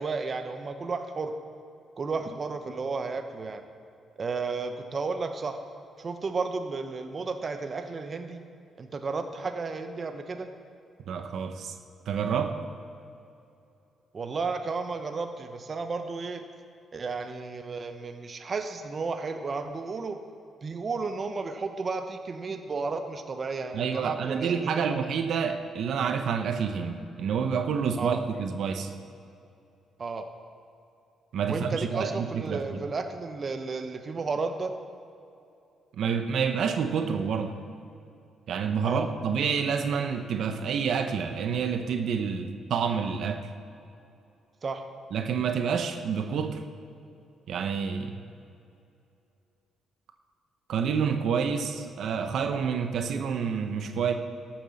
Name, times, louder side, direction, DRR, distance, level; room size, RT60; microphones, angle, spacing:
voice 1, 0.0-1.3 2.0-3.6 4.2-5.6 6.0-8.4 8.8-10.5 14.1-16.4 16.9-20.2 20.6-25.0 28.0-28.2 30.0-30.3 31.5-34.7 38.8-39.1 44.6-44.8, right 4 dB, 40° right, 6 dB, 0.9 m, -33 dB
voice 2, 11.1-11.7 12.1-12.5 23.7-28.9 31.3-32.8 36.0-37.5 38.5-43.5 45.1-46.6 47.5-48.2 50.7-54.1, right 6 dB, 70° right, 6 dB, 0.9 m, -28 dB
13.0 x 7.2 x 6.4 m, 2.6 s
cardioid pair, 90°, 0 cm